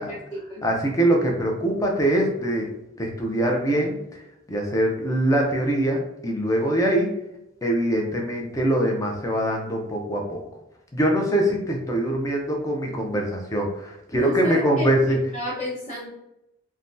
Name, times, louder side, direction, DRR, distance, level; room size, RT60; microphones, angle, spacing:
voice 1, 0.0-0.6 14.2-14.9 15.3-16.1, left 1 dB, 35° left, -9 dB, 0.9 m, -31 dB
voice 2, 0.6-2.7 3.0-4.0 4.5-7.1 7.6-10.4 10.9-15.2, right 1 dB, 15° left, 0 dB, 0.5 m, -23 dB
3.3 x 2.2 x 2.6 m, 0.83 s
head